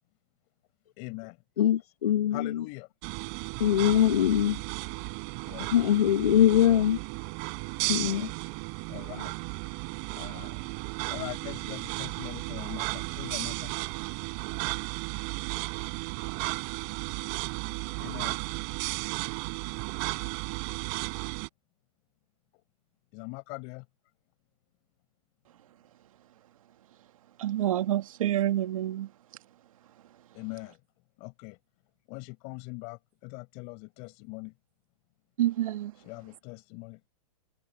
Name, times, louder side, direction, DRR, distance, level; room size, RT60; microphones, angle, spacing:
voice 1, 1.0-1.4 2.3-2.9 5.4-5.9 7.8-8.3 8.9-9.3 10.1-10.7 11.1-13.7 18.0-18.4 23.1-23.9 30.3-30.8 31.2-31.6 32.1-34.5 36.0-37.1, left 31 dB, 35° left, 7.8 m, -42 dB
voice 2, 1.6-2.6 3.6-4.6 5.7-7.0 7.9-8.3, left 10 dB, 80° left, 1.5 m, -23 dB
sound 1, 3.0-21.5, right 40 dB or more, 35° right, 4.7 m, -34 dB
voice 3, 27.4-29.1 35.4-36.0, right 12 dB, 60° right, 1.8 m, -28 dB
hypercardioid pair, 155°, 19 cm